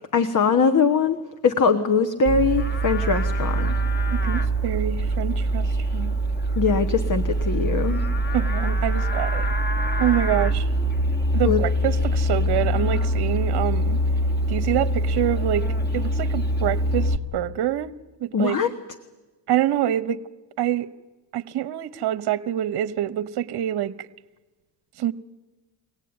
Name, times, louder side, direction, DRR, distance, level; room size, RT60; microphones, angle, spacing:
voice 1, 0.1-1.2 1.4-3.8 6.6-8.0 11.4-11.6 18.3-18.7, left 5 dB, 40° left, 8 dB, 1.3 m, -21 dB
Livestock farm animals working animals, 2.3-17.2, right 1 dB, 20° left, 1.8 m, -24 dB
voice 2, 4.1-6.1 8.3-9.5 10.0-10.7 11.3-14.0 14.5-15.7 15.9-17.9 18.2-18.6 19.5-20.2 20.6-20.9 21.3-24.1 25.0-25.1, right 12 dB, 55° right, 12 dB, 1.0 m, -26 dB
23.0 x 17.0 x 9.6 m, 1.2 s
supercardioid pair, 75°, 47 cm